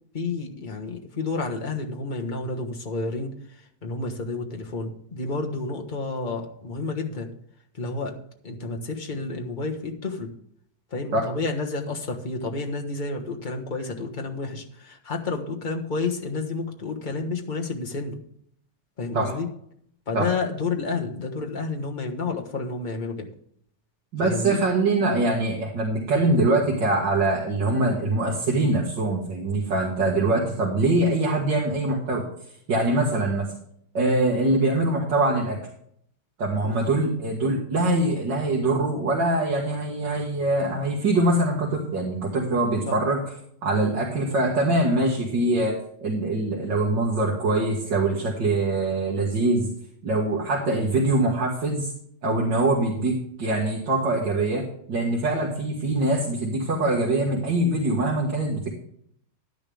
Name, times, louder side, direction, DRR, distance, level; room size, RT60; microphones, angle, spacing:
voice 1, 0.1-3.3 3.8-7.3 7.7-8.1 8.4-10.3 10.9-18.2 19.0-19.5 20.1-23.3 24.2-24.6 36.6-36.8 42.9-43.0, left 3 dB, 30° left, 2 dB, 1.3 m, -30 dB
voice 2, 24.1-32.2 32.7-33.5 33.9-35.6 36.4-43.2 43.6-49.7 50.0-51.9 52.2-58.7, right 2 dB, 80° right, -3 dB, 2.5 m, -23 dB
11.0 x 10.5 x 3.5 m, 0.67 s
omnidirectional pair, 1.9 m